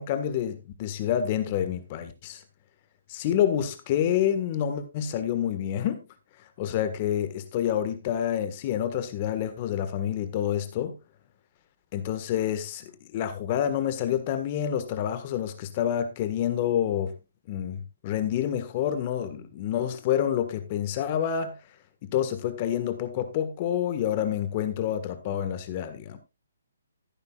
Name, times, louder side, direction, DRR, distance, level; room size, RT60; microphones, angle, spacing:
voice 1, 0.0-2.4 3.1-6.1 6.6-11.0 11.9-17.1 17.5-21.5 22.0-26.2, left 10 dB, 35° left, 1.6 m, -28 dB
14.0 x 11.5 x 2.4 m
hypercardioid pair, 145°, 0 cm